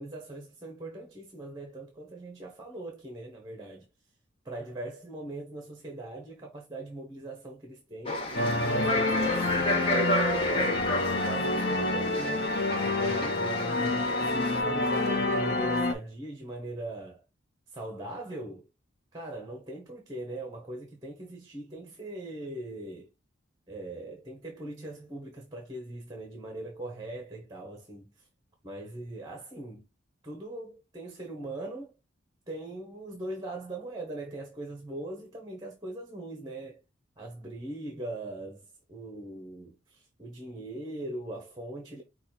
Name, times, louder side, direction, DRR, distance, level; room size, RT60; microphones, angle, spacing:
voice 1, 0.0-3.9 4.4-8.2 8.7-17.2 17.7-18.7 19.1-23.1 23.7-28.3 28.6-29.9 30.2-31.9 32.5-36.8 37.2-42.0, right 2 dB, 20° right, 0.9 m, -40 dB
sound 1, 8.1-14.6, left 1 dB, 30° left, 1.0 m, -32 dB
sound 2, 8.3-15.9, left 2 dB, 50° left, 0.8 m, -28 dB
5.1 x 2.3 x 4.3 m
head